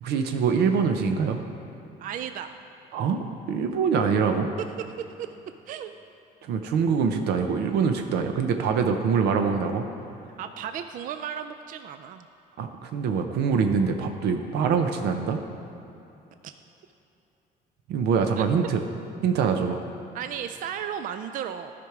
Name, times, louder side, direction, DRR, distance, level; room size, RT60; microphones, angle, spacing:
voice 1, 0.0-1.4 2.9-4.5 6.5-9.9 12.6-15.4 17.9-18.8 19.2-19.8, right 6 dB, 75° right, 5 dB, 0.7 m, -24 dB
voice 2, 2.0-2.5 5.2-5.3 5.7-5.9 10.4-12.3 16.4-16.5 18.4-18.5 20.1-21.7, right 9 dB, 55° right, 9 dB, 0.4 m, -34 dB
12.5 x 5.2 x 4.7 m, 2.9 s
cardioid pair, 110°, 17 cm